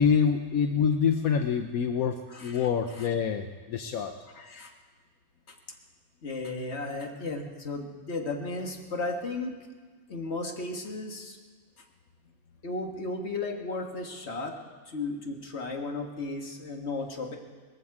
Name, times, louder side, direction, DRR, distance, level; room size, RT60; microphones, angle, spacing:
voice 1, 0.0-4.1, left 7 dB, 80° left, 6 dB, 1.2 m, -26 dB
voice 2, 2.3-2.7 2.9-3.1 4.3-4.7 6.2-9.6 10.1-11.4 12.6-14.5 14.9-17.4, left 3 dB, 50° left, 2 dB, 1.9 m, -34 dB
20.5 x 14.5 x 4.8 m, 1.5 s
omnidirectional pair, 1.5 m